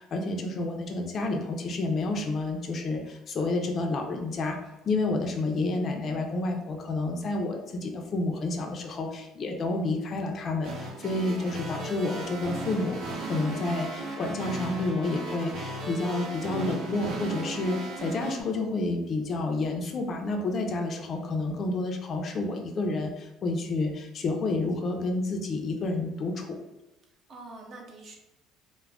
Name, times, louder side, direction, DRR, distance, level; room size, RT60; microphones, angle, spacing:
voice 1, 0.0-4.6 4.8-13.0 13.2-26.6, left 2 dB, 40° left, 3 dB, 0.4 m, -30 dB
voice 2, 6.1-6.7 24.4-24.6 27.3-28.1, right 2 dB, 45° right, 0 dB, 0.6 m, -47 dB
sound 1, 10.6-18.4, right 2 dB, 90° right, 0.6 m, -36 dB
Trumpet, 12.0-16.4, equal, ahead, 0.7 m, -48 dB
2.3 x 2.1 x 3.3 m, 1.0 s
cardioid pair, 125°, 0 cm